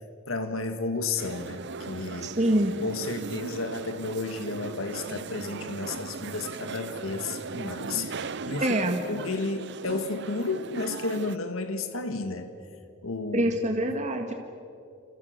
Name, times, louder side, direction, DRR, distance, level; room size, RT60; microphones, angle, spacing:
voice 1, 0.3-2.3 2.8-12.5 13.0-13.5, left 3 dB, 90° left, 8 dB, 1.8 m, -32 dB
sound 1, 1.2-11.4, right 4 dB, 60° right, 0.8 m, -38 dB
voice 2, 2.2-2.7 8.6-9.0 13.3-14.3, right 1 dB, 35° right, 3 dB, 1.9 m, -25 dB
29.5 x 28.5 x 6.7 m, 2.6 s
head